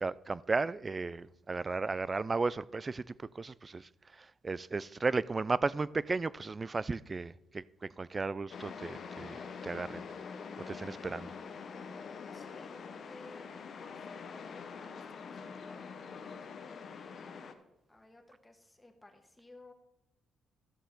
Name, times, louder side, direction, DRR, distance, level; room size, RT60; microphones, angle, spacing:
voice 1, 0.0-10.1 10.7-11.3, right 4 dB, 30° right, 0.3 m, -35 dB
sound 1, 8.5-17.5, left 5 dB, 55° left, 0.9 m, -45 dB
voice 2, 12.3-16.3 16.7-17.4 17.9-19.7, left 2 dB, 10° left, 1.5 m, -58 dB
13.5 x 6.5 x 3.9 m
cardioid pair, 90°, 0 cm